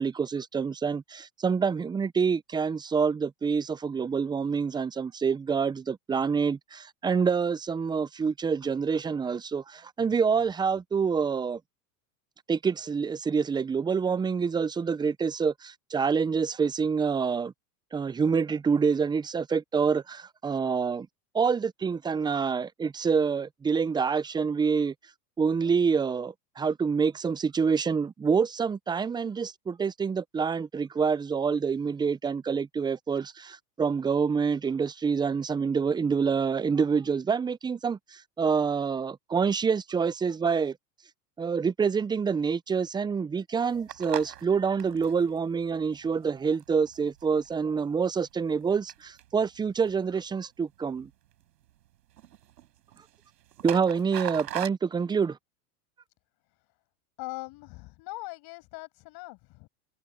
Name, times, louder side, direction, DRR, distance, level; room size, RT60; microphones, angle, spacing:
voice 1, 0.0-11.6 12.5-17.5 17.9-21.1 21.3-24.9 25.4-40.8 41.4-51.1 53.6-55.4, right 5 dB, 10° right, 0.5 m, -27 dB
sound 1, 43.6-47.6 48.1-48.6 48.9-50.2 50.9-51.4 51.7-51.9 52.1-54.7, right 13 dB, 75° right, 6.2 m, -41 dB
voice 2, 57.2-59.7, left 22 dB, 50° left, 7.7 m, -41 dB
hypercardioid pair, 110°, 49 cm